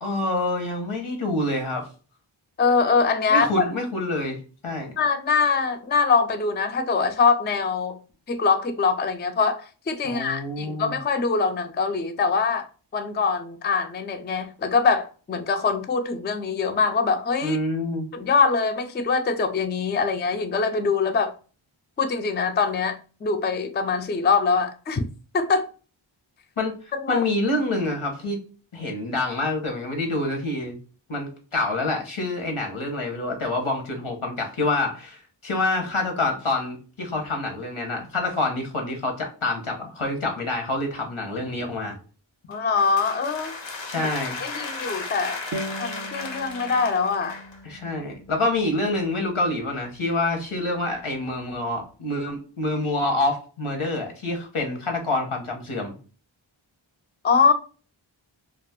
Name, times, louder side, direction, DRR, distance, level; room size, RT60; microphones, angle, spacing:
voice 1, 0.0-1.9 3.3-4.4 4.6-4.9 10.0-11.0 17.4-18.1 26.6-26.7 27.1-28.4 28.7-30.8 31.1-42.0 43.9-44.4 47.6-55.9, left 2 dB, 85° left, 1.0 m, -27 dB
voice 2, 2.6-3.5 5.0-8.0 8.3-12.7 12.9-17.6 18.1-21.3 22.0-25.0 25.3-25.7 27.0-27.2 42.5-43.6 44.0-44.1 44.4-45.4 45.8-47.4 57.2-57.5, left 5 dB, 25° left, 0.3 m, -23 dB
sound 1, 42.5-47.6, left 3 dB, 65° left, 0.6 m, -35 dB
sound 2, 45.5-50.5, right 1 dB, 40° right, 0.5 m, -40 dB
2.4 x 2.3 x 3.4 m
wide cardioid pair, 45°, 48 cm